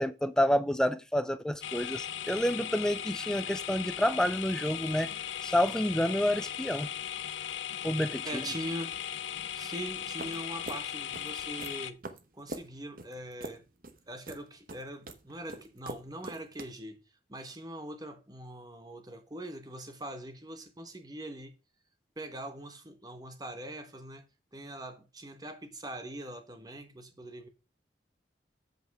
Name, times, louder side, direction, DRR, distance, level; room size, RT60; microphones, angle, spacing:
voice 1, 0.0-5.1 5.4-6.9 7.8-8.4, equal, 5° left, 0.4 m, -29 dB
sound 1, 1.6-11.9, left 10 dB, 85° left, 0.6 m, -38 dB
voice 2, 8.2-9.0 9.6-12.0 12.3-13.6 14.1-17.0 17.3-21.5 22.2-24.2 24.5-27.5, right 1 dB, 20° right, 1.0 m, -42 dB
sound 2, 10.2-16.6, right 2 dB, 50° right, 0.9 m, -44 dB
7.9 x 5.3 x 4.6 m
head